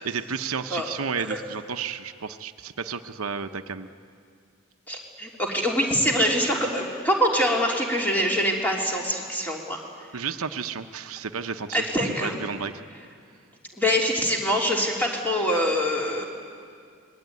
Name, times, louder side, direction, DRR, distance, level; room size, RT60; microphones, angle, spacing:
voice 1, 0.0-3.9 10.1-12.7, right 6 dB, 85° right, 8 dB, 0.9 m, -32 dB
voice 2, 4.9-9.8 11.7-12.3 13.8-16.2, equal, 10° left, -1 dB, 3.4 m, -24 dB
25.0 x 20.5 x 9.6 m, 2.3 s
head